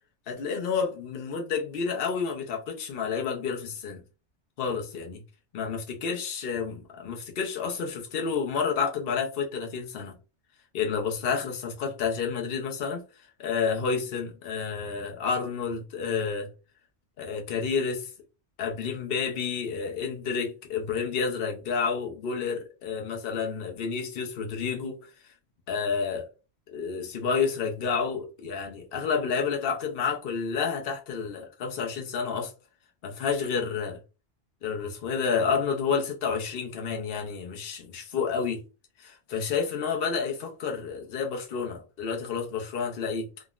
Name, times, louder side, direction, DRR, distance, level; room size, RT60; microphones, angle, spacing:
voice 1, 0.3-4.0 4.6-5.2 5.5-10.1 10.7-13.0 13.4-16.5 17.2-18.1 18.6-25.1 25.7-26.3 26.7-32.5 33.0-34.0 34.6-38.6 39.0-43.3, left 6 dB, 60° left, 0.9 m, -30 dB
3.6 x 2.0 x 2.4 m
omnidirectional pair, 1.1 m